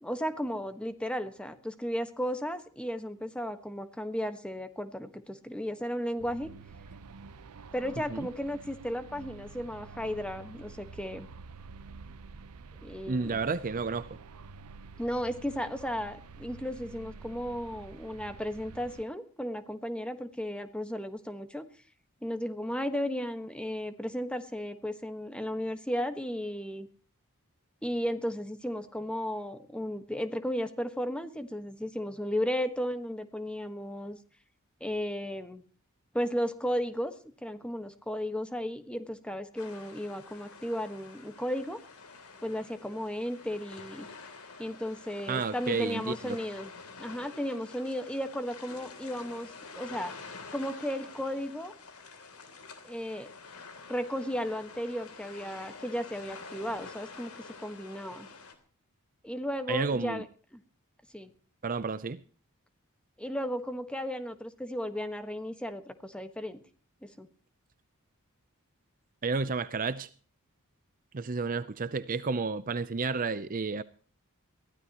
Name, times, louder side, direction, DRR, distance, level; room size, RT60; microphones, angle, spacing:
voice 1, 0.0-6.5 7.7-11.3 12.8-13.4 15.0-21.7 22.2-26.9 27.8-34.2 34.8-35.6 36.1-37.1 37.4-41.8 42.4-44.1 44.6-46.7 47.0-49.5 49.7-50.1 50.5-51.7 52.8-53.3 53.9-57.3 57.6-58.3 59.2-60.2 60.5-60.6 61.1-61.3 63.2-66.6 67.0-67.3, equal, 5° left, 1.4 m, -34 dB
sound 1, 6.2-19.0, right 4 dB, 90° right, 0.7 m, -49 dB
voice 2, 13.1-14.2 45.3-46.4 59.7-60.2 61.6-62.2 69.2-70.1 71.1-73.8, right 4 dB, 40° right, 0.6 m, -31 dB
sound 2, 39.6-58.5, left 4 dB, 75° left, 3.2 m, -48 dB
22.0 x 16.0 x 3.0 m
head